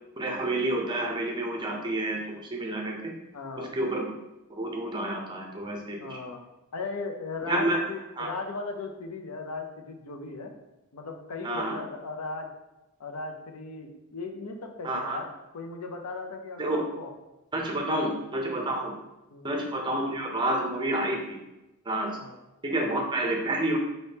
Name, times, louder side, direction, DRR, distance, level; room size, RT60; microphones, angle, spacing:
voice 1, 0.2-3.0 3.6-4.1 4.5-6.2 7.5-7.8 8.2-8.3 11.4-11.8 14.8-15.2 16.6-16.8 17.5-18.9 19.4-21.4 21.9-22.2 22.6-23.8, right 1 dB, 20° right, 1 dB, 0.6 m, -29 dB
voice 2, 3.3-3.7 6.0-6.4 6.7-10.5 10.9-12.5 13.0-15.3 15.5-17.1 17.9-18.0 18.8-18.9 19.3-19.5 22.1-22.4 22.7-23.0, left 3 dB, 80° left, 3 dB, 0.6 m, -37 dB
4.1 x 3.5 x 2.8 m, 0.97 s
head